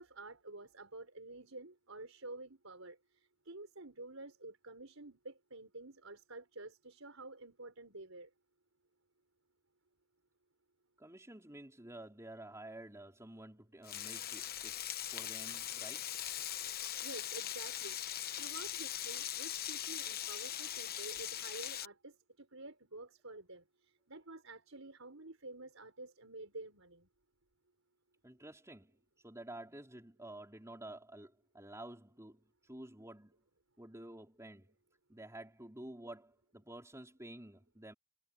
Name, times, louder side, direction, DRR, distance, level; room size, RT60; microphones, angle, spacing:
voice 1, 0.0-8.3 17.0-18.0 18.4-27.1, right 2 dB, 65° right, 5.8 m, -50 dB
voice 2, 11.0-14.7 15.1-16.2 28.2-33.3 33.8-34.7 35.1-37.9, right 1 dB, 15° right, 4.7 m, -51 dB
Frying (food), 13.8-21.9, left 11 dB, 45° left, 1.0 m, -41 dB
head